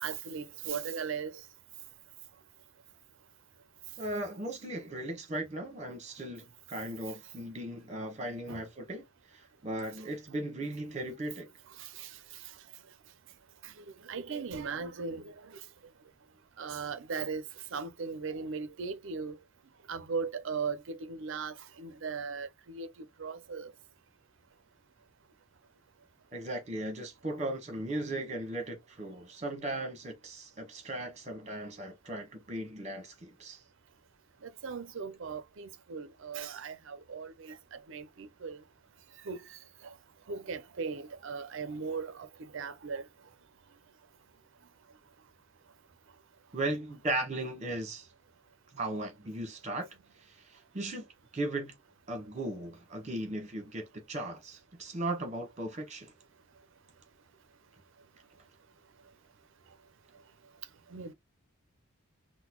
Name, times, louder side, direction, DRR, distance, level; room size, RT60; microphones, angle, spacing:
voice 1, 0.0-1.3 8.5-8.6 11.8-12.1 13.6-13.7 14.0-15.6 16.6-17.4 17.7-19.4 19.9-22.9 23.2-23.7 34.4-38.6 39.2-39.6 39.8-39.9 40.3-43.0 60.9-61.1, right 5 dB, 60° right, 0.5 m, -38 dB
voice 2, 4.0-9.0 9.3-11.5 26.3-33.6 46.5-48.1 48.7-49.9 50.3-51.1 51.3-51.7 52.1-56.1, right 1 dB, 30° right, 1.0 m, -37 dB
3.8 x 2.1 x 2.9 m
head